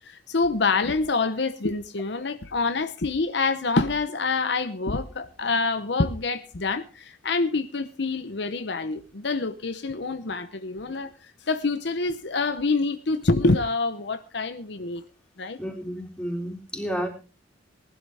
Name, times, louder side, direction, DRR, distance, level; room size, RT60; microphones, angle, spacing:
voice 1, 0.0-11.1 11.4-15.0 15.4-15.6, left 3 dB, 65° left, 0.9 m, -26 dB
voice 2, 15.6-17.1, equal, 5° left, 3.7 m, -31 dB
19.5 x 12.0 x 3.5 m
head